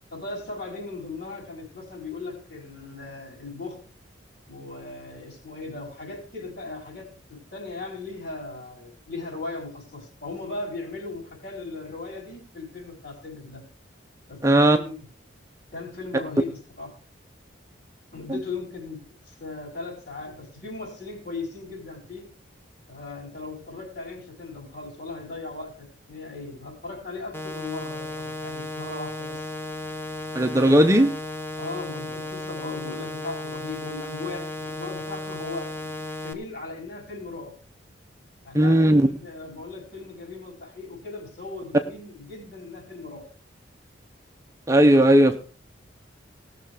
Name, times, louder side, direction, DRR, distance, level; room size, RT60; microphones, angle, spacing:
voice 1, 0.1-3.8 4.5-13.6 14.3-14.4 14.7-15.0 15.7-16.9 18.1-19.0 19.3-22.2 22.9-29.4 31.5-35.9 36.2-37.5 38.4-43.3, left 3 dB, 60° left, -3 dB, 5.6 m, -37 dB
voice 2, 14.4-14.8 30.3-31.1 38.5-39.0 44.7-45.4, right 1 dB, 15° right, 5 dB, 0.7 m, -16 dB
sound 1, 27.3-36.3, left 1 dB, 10° left, 1.1 m, -35 dB
17.5 x 6.7 x 4.9 m, 0.38 s
head